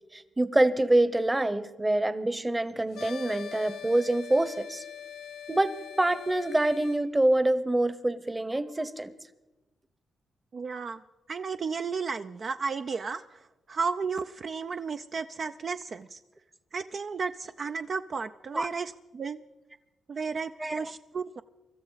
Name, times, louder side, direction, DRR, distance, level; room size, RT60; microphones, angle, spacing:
voice 1, 0.1-4.8 5.5-9.1 18.5-18.7 20.6-20.9, right 1 dB, 15° right, 14 dB, 0.9 m, -26 dB
sound 1, 2.9-7.0, left 8 dB, 90° left, 1.7 m, -42 dB
voice 2, 10.5-11.0 11.3-16.2 16.7-19.4 20.1-21.4, right 5 dB, 50° right, 8 dB, 0.4 m, -33 dB
24.5 x 13.5 x 4.0 m, 1.1 s
cardioid pair, 80°, 0 cm